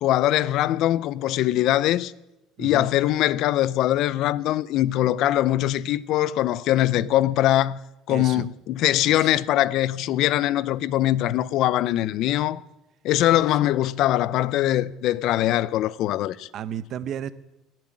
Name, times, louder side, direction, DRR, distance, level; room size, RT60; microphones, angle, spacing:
voice 1, 0.0-2.1 2.6-7.8 8.1-12.6 13.0-16.5, left 14 dB, 55° left, 0.5 m, -22 dB
voice 2, 2.6-2.9 8.1-8.5 9.1-9.4 13.3-13.6 16.5-17.3, right 9 dB, 40° right, 0.7 m, -34 dB
17.5 x 7.6 x 9.5 m
cardioid pair, 150°, 0 cm